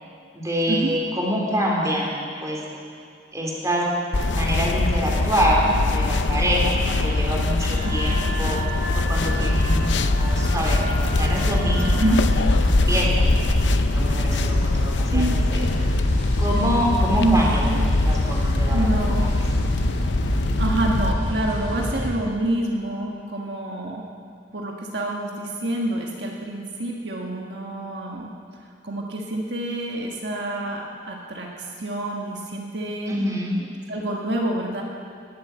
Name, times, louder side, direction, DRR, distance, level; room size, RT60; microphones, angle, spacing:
voice 1, 0.3-2.6 3.3-3.9 4.3-5.6 5.9-8.6 8.9-10.8 11.1-12.0 12.9-15.6 16.4-17.7 18.0-19.3 33.1-33.6, equal, 20° right, -3 dB, 3.3 m, -26 dB
sound 1, 4.1-21.1, left 2 dB, 85° left, 0.6 m, -23 dB
Wind instrument woodwind instrument, 7.7-12.3, right 1 dB, 50° right, 4.1 m, -36 dB
voice 2, 7.8-8.3 11.9-12.2 15.1-15.7 17.2-17.4 17.8-17.9 18.7-19.3 20.6-24.1 24.5-28.3 28.8-33.1 33.9-34.8, right 1 dB, 70° right, -1 dB, 1.6 m, -27 dB
sound 2, 9.2-22.1, equal, 45° left, 2.7 m, -27 dB
19.0 x 8.2 x 8.1 m, 2.4 s
head